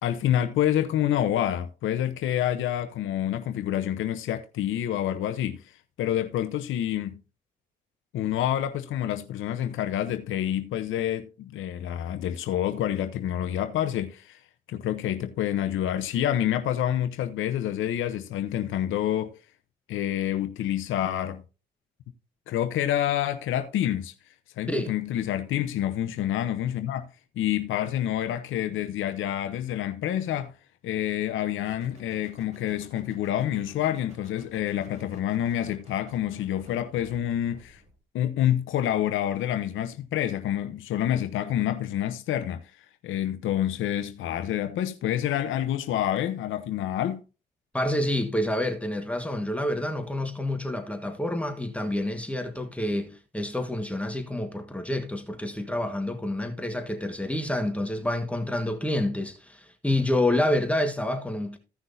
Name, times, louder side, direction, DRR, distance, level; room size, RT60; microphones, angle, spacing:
voice 1, 0.0-5.6 6.0-7.1 8.1-14.4 14.7-19.4 19.9-21.4 22.5-24.1 24.6-27.1 27.4-30.5 30.8-37.8 38.1-42.7 43.0-47.2, left 11 dB, 80° left, 0.8 m, -28 dB
sound 1, 31.6-38.0, right 1 dB, 35° right, 4.1 m, -54 dB
voice 2, 47.7-61.6, left 1 dB, 5° left, 1.4 m, -28 dB
15.5 x 6.0 x 2.7 m
cardioid pair, 90°, 20 cm